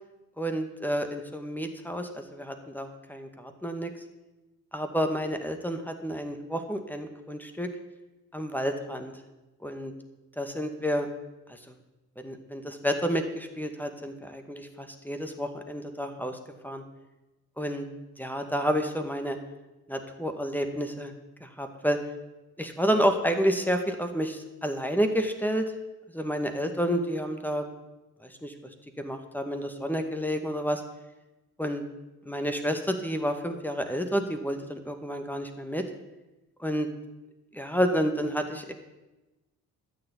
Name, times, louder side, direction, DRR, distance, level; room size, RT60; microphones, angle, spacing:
voice 1, 0.4-3.9 4.7-7.7 8.3-9.1 9.6-9.9 10.4-11.1 12.2-16.4 16.6-16.8 17.6-17.9 18.2-19.4 19.9-21.1 21.4-22.0 22.6-25.6 26.1-27.7 28.2-28.5 29.0-30.8 31.6-31.8 32.2-35.8 36.6-36.9 37.5-38.7, equal, 5° left, 5 dB, 2.0 m, -30 dB
13.0 x 6.9 x 8.6 m, 1.1 s
hypercardioid pair, 45°, 43 cm